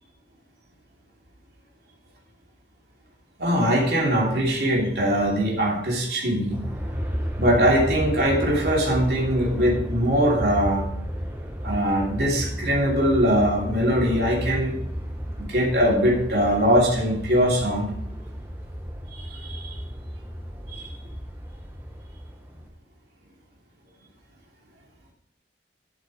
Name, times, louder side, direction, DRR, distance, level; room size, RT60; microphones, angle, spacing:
voice 1, 3.4-6.6 7.4-10.9 11.6-14.7 15.4-17.9 19.1-19.8 20.7-20.9, equal, 60° right, -3 dB, 3.2 m, -22 dB
Aircraft, 6.5-22.7, equal, 10° right, 1.2 m, -33 dB
12.0 x 5.8 x 5.0 m, 0.70 s
head